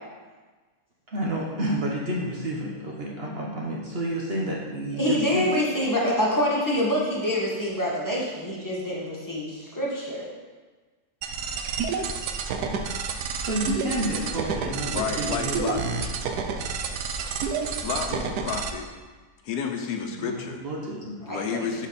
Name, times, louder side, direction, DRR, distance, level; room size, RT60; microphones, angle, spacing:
voice 1, 1.1-5.5 11.9-12.2 13.4-16.0 20.1-21.2, right 1 dB, 45° right, -2 dB, 1.1 m, -30 dB
voice 2, 5.0-10.2 21.3-21.7, equal, 10° left, -5 dB, 1.7 m, -26 dB
sound 1, 11.2-18.7, right 5 dB, 85° right, 1.2 m, -29 dB
voice 3, 14.9-15.8 17.8-18.9 19.4-20.6 21.3-21.9, left 6 dB, 85° left, 5 dB, 1.3 m, -30 dB
12.0 x 4.4 x 4.1 m, 1.4 s
omnidirectional pair, 1.6 m